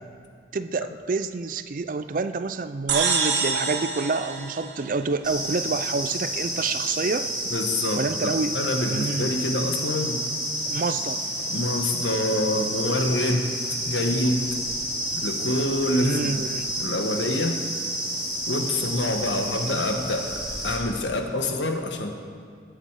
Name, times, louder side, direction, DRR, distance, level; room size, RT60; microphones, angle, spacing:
voice 1, 0.5-7.3 7.9-8.6 8.9-9.3 10.7-11.2 16.0-16.8, right 4 dB, 45° right, 11 dB, 0.4 m, -28 dB
sound 1, 2.9-5.5, right 5 dB, 70° right, 1.4 m, -27 dB
sound 2, 5.2-20.7, equal, 5° right, 3.2 m, -30 dB
voice 2, 7.5-10.2 11.5-13.5 13.9-14.4 15.1-16.4 16.8-17.6 18.5-20.4 20.6-22.2, left 1 dB, 70° left, 4 dB, 1.3 m, -26 dB
20.0 x 8.1 x 4.8 m, 2.1 s
head